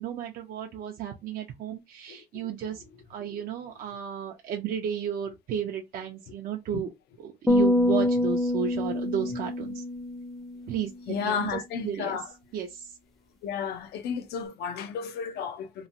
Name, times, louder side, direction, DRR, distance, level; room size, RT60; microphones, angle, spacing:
voice 1, 0.0-2.8 3.1-6.9 7.2-9.8 10.7-12.2 12.5-12.9, right 8 dB, 55° right, 0.5 m, -33 dB
sound 1, 7.5-10.9, left 1 dB, ahead, 0.5 m, -26 dB
voice 2, 11.1-12.3 13.4-15.9, left 6 dB, 70° left, 0.6 m, -32 dB
3.0 x 2.1 x 2.6 m
cardioid pair, 110°, 17 cm